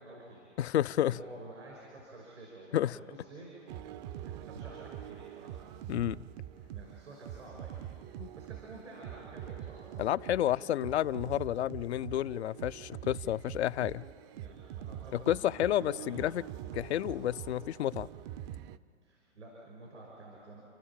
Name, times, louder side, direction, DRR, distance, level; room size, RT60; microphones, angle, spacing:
voice 1, 0.0-0.5 1.0-3.6 4.2-5.7 6.7-9.9 14.3-16.3 19.0-20.6, right 2 dB, 80° right, -2 dB, 5.8 m, -50 dB
voice 2, 0.6-1.2 2.7-3.0 5.9-6.2 8.2-8.3 10.0-14.0 15.1-16.4 16.7-18.1, left 12 dB, 65° left, 15 dB, 0.5 m, -30 dB
sound 1, 3.7-18.8, right 11 dB, 35° right, 0.6 m, -44 dB
30.0 x 12.5 x 8.8 m, 2.3 s
figure-of-eight pair, 105°, 36 cm